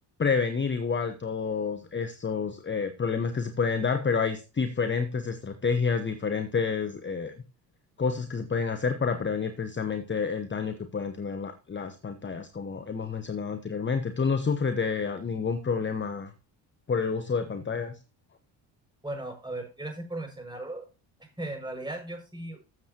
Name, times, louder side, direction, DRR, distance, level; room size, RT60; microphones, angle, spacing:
voice 1, 0.2-7.3 8.0-16.3 16.9-18.0, left 5 dB, 25° left, 9 dB, 1.0 m, -29 dB
voice 2, 19.0-20.8 21.4-22.6, right 2 dB, 10° right, 3 dB, 6.3 m, -37 dB
14.0 x 7.3 x 3.0 m, 0.31 s
supercardioid pair, 60°, 49 cm